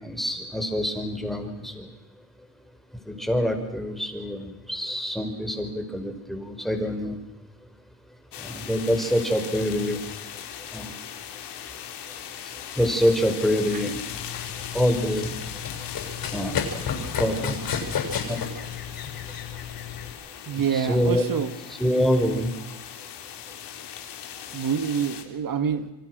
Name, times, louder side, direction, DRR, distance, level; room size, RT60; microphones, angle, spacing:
voice 1, 0.0-1.9 3.1-7.2 8.4-10.0 10.7-11.0 12.4-14.0 14.7-15.3 16.3-16.6 17.2-17.6 18.3-18.4 20.7-21.2 21.8-22.5, equal, ahead, 5 dB, 5.3 m, -25 dB
sound 1, 8.3-25.2, left 9 dB, 75° left, 3.7 m, -39 dB
Run, 14.1-20.1, left 6 dB, 60° left, 6.5 m, -32 dB
voice 2, 20.5-21.5 24.5-25.9, right 7 dB, 55° right, 10 dB, 2.0 m, -26 dB
28.5 x 25.0 x 6.4 m, 0.98 s
cardioid pair, 105°, 41 cm